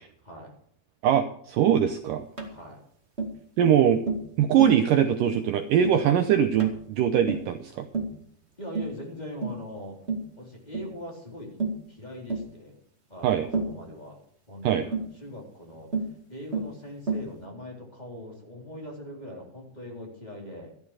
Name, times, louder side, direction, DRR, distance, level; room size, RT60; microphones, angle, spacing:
voice 1, 1.0-2.2 3.6-4.0 4.4-7.9 13.2-13.5 14.6-14.9, right 9 dB, 75° right, 7 dB, 2.2 m, -22 dB
voice 2, 2.4-2.8 8.6-10.0 10.4-11.6 11.9-12.8 13.1-14.2 14.5-20.7, left 1 dB, 10° left, -3 dB, 3.5 m, -41 dB
Tap, 2.4-2.6 3.2-3.4 4.1-4.3 4.6-4.8 5.3-5.5 5.8-6.1 6.6-6.8 7.3-7.5 7.9-8.2 8.7-9.0 9.4-9.7 10.1-10.3 10.7-10.9 11.6-11.8 12.3-12.5 13.5-13.8 14.9-15.1 15.9-16.2 16.5-16.8 17.1-17.3, right 3 dB, 20° right, 2.0 m, -30 dB
14.5 x 12.0 x 4.9 m, 0.66 s
omnidirectional pair, 4.5 m